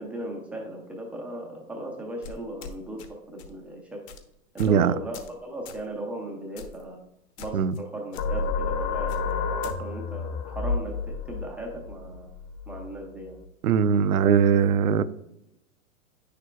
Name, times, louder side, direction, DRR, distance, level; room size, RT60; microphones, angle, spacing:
voice 1, 0.0-4.0 4.5-7.0 7.4-12.3 12.7-13.4, right 1 dB, 5° right, -1 dB, 0.3 m, -37 dB
sound 1, 2.2-3.1 3.4-3.6 4.1-4.2 4.6-4.8 5.1-5.4 5.7-5.9 6.6-6.8 7.4-7.8 8.1-8.2 9.1-9.8, left 5 dB, 50° left, 1.0 m, -43 dB
voice 2, 4.6-4.9 7.5-7.7 13.6-15.0, right 7 dB, 85° right, 15 dB, 0.6 m, -20 dB
sound 2, 8.2-13.4, left 4 dB, 35° left, 0.7 m, -31 dB
8.9 x 6.6 x 2.3 m, 0.86 s
hypercardioid pair, 120°, 42 cm